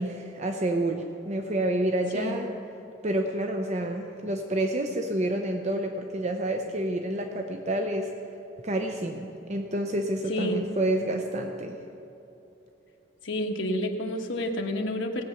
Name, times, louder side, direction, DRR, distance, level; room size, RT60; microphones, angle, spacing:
voice 1, 0.0-2.5 3.0-8.1 8.6-11.8, right 1 dB, 35° right, 4 dB, 0.6 m, -29 dB
voice 2, 13.2-15.2, left 1 dB, 70° left, 2 dB, 1.2 m, -29 dB
17.5 x 8.1 x 5.8 m, 2.9 s
head